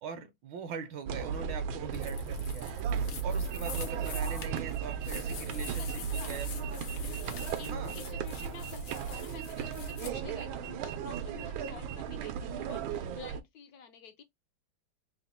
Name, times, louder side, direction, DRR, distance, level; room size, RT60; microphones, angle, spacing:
voice 1, 0.0-2.7 3.2-6.5 7.6-7.9, right 6 dB, 75° right, 1.2 m, -41 dB
sound 1, 1.1-13.4, right 6 dB, 90° right, 1.4 m, -35 dB
sound 2, 1.9-10.1, left 7 dB, 90° left, 1.7 m, -46 dB
sound 3, 3.4-12.0, right 14 dB, 50° right, 0.5 m, -48 dB
voice 2, 5.6-6.8 7.6-14.2, left 6 dB, 70° left, 0.9 m, -50 dB
4.0 x 2.1 x 4.1 m
omnidirectional pair, 2.2 m